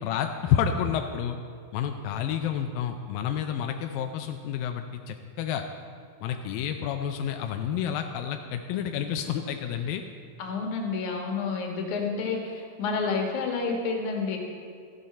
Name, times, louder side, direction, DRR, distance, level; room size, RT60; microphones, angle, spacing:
voice 1, 0.0-1.4 1.7-5.7 6.2-10.0, left 9 dB, 85° left, 5 dB, 2.0 m, -29 dB
voice 2, 10.4-14.4, left 4 dB, 60° left, 1 dB, 2.5 m, -29 dB
14.0 x 11.5 x 4.3 m, 2.2 s
omnidirectional pair, 4.7 m